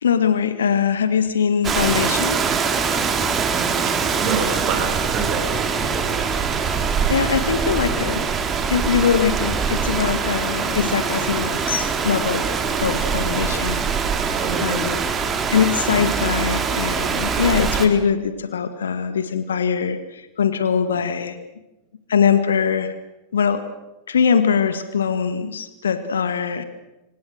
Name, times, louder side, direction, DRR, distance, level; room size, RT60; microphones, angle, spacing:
voice 1, 0.0-2.4 7.1-12.4 12.8-13.8 14.6-15.0 15.5-21.4 22.1-22.9 23.3-23.6 24.1-26.6, left 7 dB, 65° left, 11 dB, 1.9 m, -22 dB
Rain, 1.6-17.9, right 6 dB, 25° right, 3.3 m, -23 dB
voice 2, 3.5-6.1 14.2-14.9, right 5 dB, 40° right, 5 dB, 6.5 m, -28 dB
26.5 x 25.5 x 6.5 m, 1.0 s
figure-of-eight pair, 90°, 0 cm